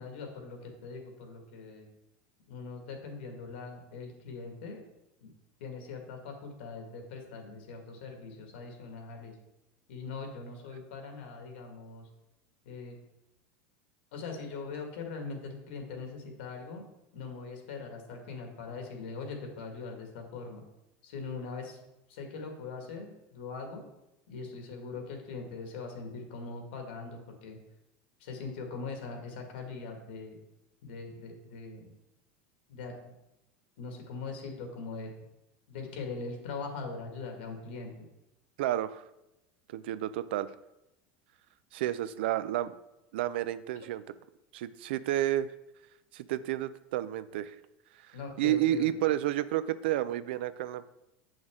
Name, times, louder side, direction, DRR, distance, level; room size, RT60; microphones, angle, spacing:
voice 1, 0.0-1.9 2.5-4.8 5.2-5.3 5.6-9.3 9.9-12.1 12.7-13.0 14.1-16.8 17.1-20.6 21.0-21.8 22.1-23.9 24.3-27.6 28.2-30.4 30.8-31.9 32.7-33.1 33.8-35.1 35.7-37.9 48.1-48.9, left 4 dB, 75° left, 3 dB, 1.8 m, -41 dB
voice 2, 38.6-39.0 39.7-40.5 41.7-42.7 43.1-44.0 44.5-45.5 46.1-47.6 48.4-50.9, right 13 dB, 75° right, 15 dB, 0.4 m, -30 dB
7.9 x 6.2 x 3.6 m, 0.91 s
supercardioid pair, 165°, 6 cm